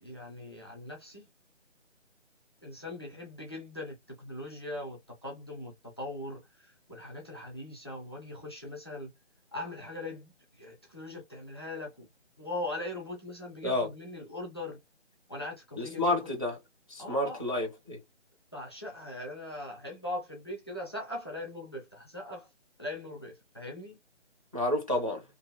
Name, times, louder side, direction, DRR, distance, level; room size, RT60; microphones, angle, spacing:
voice 1, 0.0-1.2 2.6-9.1 9.5-12.1 12.4-14.8 15.3-16.3 17.0-17.4 18.5-22.5 22.8-24.0, left 1 dB, 20° left, 0.6 m, -40 dB
voice 2, 15.8-16.6 16.9-18.0 24.5-25.2, left 1 dB, 30° right, 0.4 m, -30 dB
2.7 x 2.1 x 2.5 m
figure-of-eight pair, 150°, 36 cm